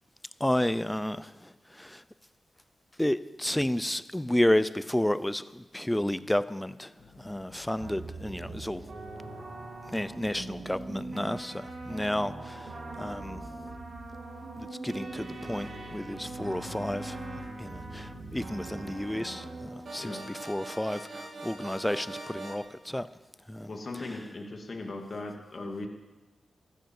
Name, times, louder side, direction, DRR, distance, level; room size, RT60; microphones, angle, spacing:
voice 1, 0.4-2.0 3.0-8.8 9.9-13.4 14.6-17.2 17.6-23.1 23.5-23.7, left 1 dB, 10° left, 15 dB, 0.6 m, -31 dB
sound 1, 7.0-12.4, left 4 dB, 85° left, 2.4 m, -55 dB
sound 2, 7.8-22.6, right 2 dB, 60° right, 3.0 m, -41 dB
voice 2, 20.0-20.3 23.7-25.9, left 2 dB, 45° left, 3 dB, 2.5 m, -38 dB
13.5 x 10.5 x 7.8 m, 1.2 s
cardioid pair, 75°, 0 cm